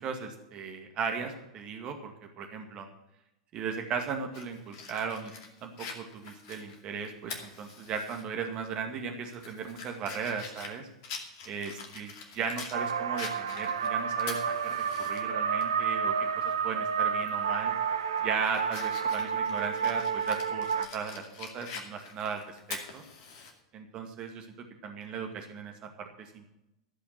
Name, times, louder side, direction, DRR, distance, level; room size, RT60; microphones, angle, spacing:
voice 1, 0.0-2.9 3.5-5.3 5.6-10.9 11.5-17.7 18.2-23.0 23.7-26.5, right 6 dB, 40° right, 4 dB, 2.1 m, -37 dB
Fire, 4.3-8.2 8.6-8.7 9.2-12.8 13.2-15.2 15.6-15.7 17.2-17.4 17.9-23.5, left 5 dB, 55° left, 2.4 m, -44 dB
Spacial Hymn, 12.7-20.9, right 7 dB, 75° right, 0.9 m, -30 dB
15.0 x 5.7 x 9.2 m, 0.88 s
figure-of-eight pair, 85°, 2 cm